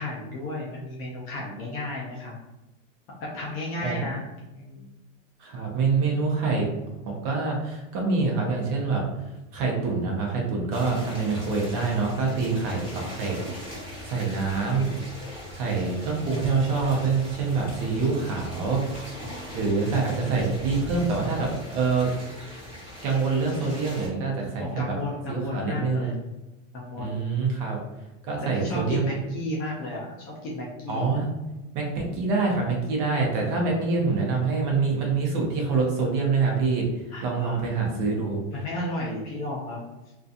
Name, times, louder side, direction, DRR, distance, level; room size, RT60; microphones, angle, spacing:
voice 1, 0.0-2.3 3.2-4.2 4.5-4.9 24.6-26.2 26.7-27.3 28.5-31.1 37.1-37.9 38.5-39.8, left 1 dB, 30° left, -4 dB, 0.3 m, -33 dB
voice 2, 5.4-6.7 7.1-9.0 9.5-14.9 15.5-19.1 19.5-22.1 23.0-24.9 25.3-26.1 27.0-27.8 28.2-29.1 30.9-31.3 31.7-38.4, right 4 dB, 40° right, -1 dB, 0.7 m, -26 dB
sound 1, 10.7-24.1, equal, 15° right, 0.9 m, -40 dB
2.7 x 2.4 x 2.4 m, 1.0 s
supercardioid pair, 155°, 38 cm